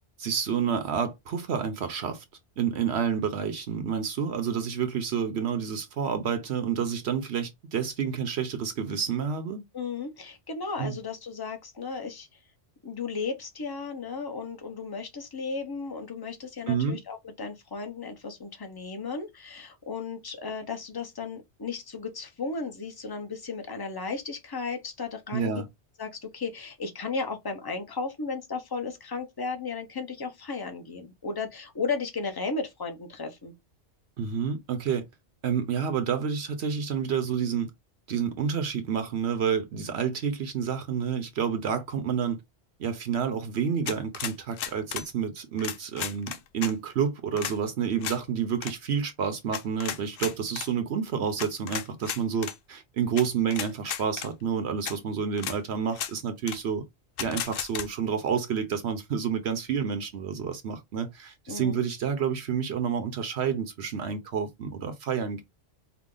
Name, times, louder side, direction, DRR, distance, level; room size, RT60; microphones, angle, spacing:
voice 1, 0.2-2.2 2.6-9.6 10.8-11.0 16.7-17.0 25.3-25.7 34.2-35.0 35.4-37.7 38.1-42.4 42.8-56.8 57.2-65.4, right 7 dB, 70° right, 1.0 m, -29 dB
voice 2, 9.7-12.4 12.8-25.6 26.0-33.5 61.5-61.8, left 4 dB, 20° left, 0.8 m, -35 dB
sound 1, 43.9-45.1 45.6-46.7 47.4-47.6 48.0-48.2 48.6-48.7 49.5-50.7 51.4-52.6 53.2-53.3 53.5-54.3 54.9-55.0 55.4-55.6 55.9-56.1 56.5-56.6 57.2-57.9, left 9 dB, 65° left, 0.7 m, -34 dB
4.7 x 2.2 x 3.8 m
omnidirectional pair, 1.1 m